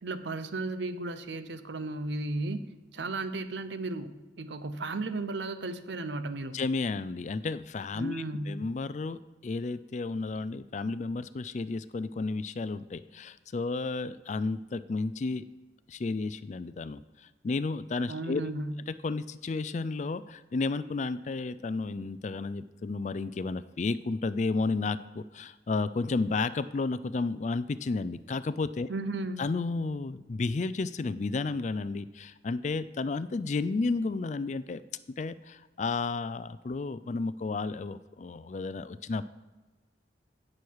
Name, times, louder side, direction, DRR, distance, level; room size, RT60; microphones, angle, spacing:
voice 1, 0.0-2.6 2.9-4.1 4.4-6.6 8.0-8.5 18.1-18.8 28.9-29.4, right 2 dB, 75° right, 11 dB, 0.8 m, -34 dB
voice 2, 6.5-15.5 15.9-17.0 17.4-18.4 18.9-28.9 29.4-34.8 35.2-39.3, left 3 dB, 40° left, 15 dB, 0.4 m, -32 dB
16.5 x 6.4 x 4.7 m, 1.2 s
head